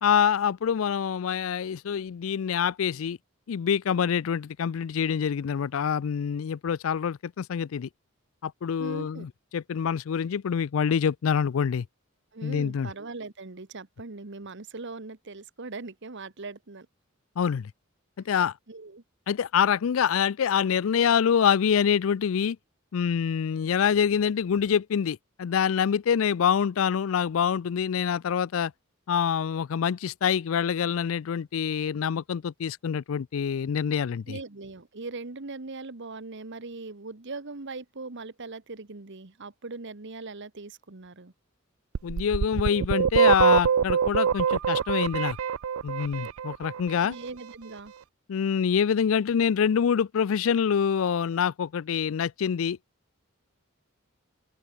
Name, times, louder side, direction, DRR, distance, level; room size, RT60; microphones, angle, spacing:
voice 1, 0.0-3.2 3.5-7.9 8.4-11.9 12.4-12.9 17.4-17.7 18.3-18.5 19.3-22.6 22.9-28.7 29.1-34.4 42.0-45.4 45.8-47.1 48.3-52.8, left 7 dB, 70° left, 0.4 m, -26 dB
voice 2, 8.8-9.3 12.3-16.9 18.7-19.0 34.3-41.3 47.0-47.9, right 3 dB, 60° right, 1.3 m, -40 dB
sound 1, 41.9-46.8, right 7 dB, 80° right, 0.4 m, -24 dB
open air
head